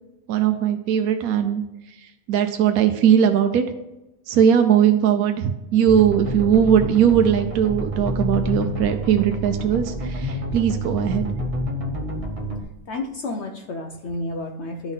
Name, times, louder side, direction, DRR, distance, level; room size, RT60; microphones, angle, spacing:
voice 1, 0.3-1.6 2.3-3.6 4.3-11.3, right 8 dB, 80° right, 6 dB, 1.1 m, -19 dB
sound 1, 5.9-12.6, right 1 dB, 30° right, 0.9 m, -28 dB
voice 2, 12.9-14.9, left 2 dB, 60° left, 4 dB, 0.9 m, -31 dB
12.0 x 4.0 x 5.4 m, 0.98 s
omnidirectional pair, 1.5 m